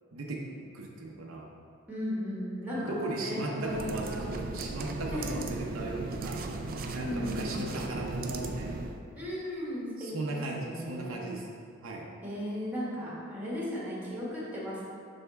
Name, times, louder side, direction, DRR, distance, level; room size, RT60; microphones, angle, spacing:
voice 1, 0.1-0.5 0.7-1.5 2.7-6.5 6.9-8.8 10.0-11.6 11.8-12.1, right 2 dB, 75° right, -1 dB, 0.7 m, -37 dB
voice 2, 1.9-4.2 5.1-5.3 5.6-5.7 7.0-7.7 9.1-11.3 12.2-14.8, left 1 dB, 10° right, -7 dB, 1.5 m, -36 dB
sound 1, 3.6-9.0, right 3 dB, 45° right, 0.4 m, -36 dB
5.6 x 3.6 x 5.6 m, 2.3 s
head